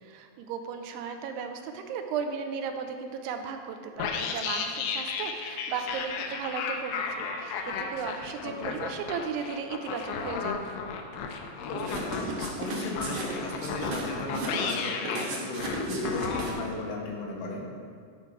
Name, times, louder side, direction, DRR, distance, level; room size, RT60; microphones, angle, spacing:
voice 1, 0.0-10.5, right 6 dB, 90° right, 6 dB, 2.7 m, -35 dB
sound 1, 4.0-16.5, left 5 dB, 90° left, 2.8 m, -34 dB
voice 2, 8.4-8.8 11.6-17.6, left 2 dB, 75° left, -1 dB, 2.8 m, -35 dB
sound 2, 11.8-16.7, right 3 dB, 65° right, 2.3 m, -35 dB
11.5 x 4.5 x 4.7 m, 2.1 s
omnidirectional pair, 4.7 m